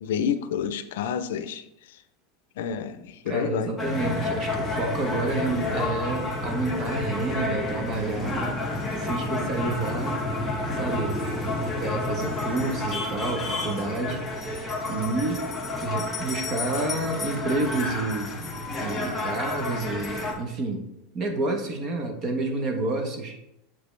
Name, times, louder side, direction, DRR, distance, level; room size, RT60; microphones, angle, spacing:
voice 1, 0.0-2.0 2.6-3.8, left 8 dB, 80° left, 11 dB, 0.5 m, -29 dB
voice 2, 3.3-8.6 9.0-10.2 10.7-11.2 11.8-15.4 15.8-18.3 18.8-20.9 21.1-23.4, right 2 dB, 30° right, 5 dB, 0.9 m, -29 dB
sound 1, 3.8-20.3, left 2 dB, 5° left, 1.0 m, -30 dB
7.4 x 5.1 x 3.2 m, 0.83 s
supercardioid pair, 180°, 0 cm